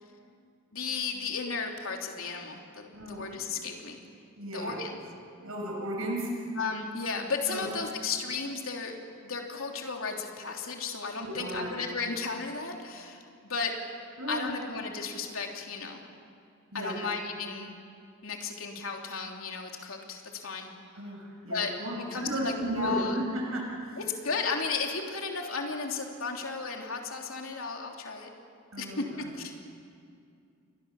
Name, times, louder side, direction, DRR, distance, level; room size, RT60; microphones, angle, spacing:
voice 1, 0.7-4.0 4.5-5.0 6.6-9.0 9.2-13.8 14.3-16.0 16.7-17.7 18.2-20.7 21.5-23.2 24.0-28.3 28.8-29.0 29.4-29.5, left 4 dB, 80° left, 2 dB, 3.2 m, -34 dB
voice 2, 2.9-3.7 4.4-4.8 5.4-6.3 7.5-7.7 11.2-11.7 14.2-14.5 16.7-17.0 20.9-24.0 28.7-29.3, right 1 dB, 90° right, -1 dB, 6.0 m, -34 dB
30.0 x 23.0 x 7.1 m, 2.4 s
head